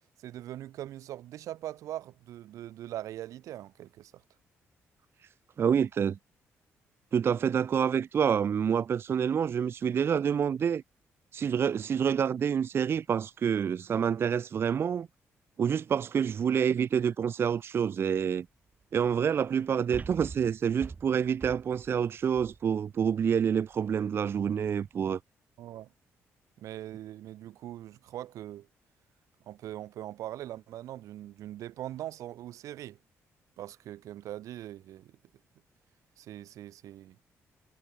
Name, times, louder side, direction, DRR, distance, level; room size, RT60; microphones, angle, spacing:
voice 1, 0.2-4.2 25.6-25.9 26.6-28.7 29.4-33.0 33.6-35.2 36.2-37.2, right 13 dB, 85° right, 3.0 m, -41 dB
voice 2, 5.6-6.2 7.1-10.8 11.3-15.1 15.6-18.5 18.9-25.2, right 7 dB, 50° right, 0.6 m, -27 dB
sound 1, 19.9-23.2 23.7-23.8, right 4 dB, 30° right, 4.5 m, -44 dB
cardioid pair, 105°, 5 cm